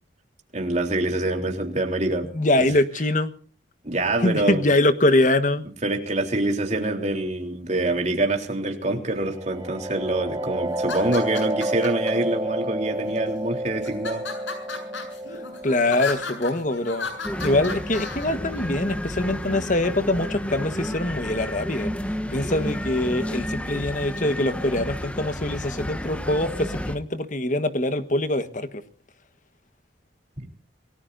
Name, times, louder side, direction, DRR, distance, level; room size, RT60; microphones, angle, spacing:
voice 1, 0.5-2.3 2.6-2.7 3.8-4.6 5.8-14.2 30.4-30.5, right 2 dB, 35° right, 3 dB, 3.5 m, -25 dB
voice 2, 2.3-3.3 4.2-5.7 15.6-17.1 17.4-21.9 22.3-28.8, left 1 dB, 40° left, 11 dB, 1.4 m, -23 dB
sound 1, 9.2-18.7, right 1 dB, 20° right, 0.7 m, -31 dB
sound 2, 10.7-12.1 12.8-13.4 13.8-18.3, left 4 dB, 85° left, 7.3 m, -34 dB
diversas atracciones feria, 17.2-27.0, equal, 5° left, 1.1 m, -31 dB
28.0 x 18.5 x 2.7 m, 0.43 s
head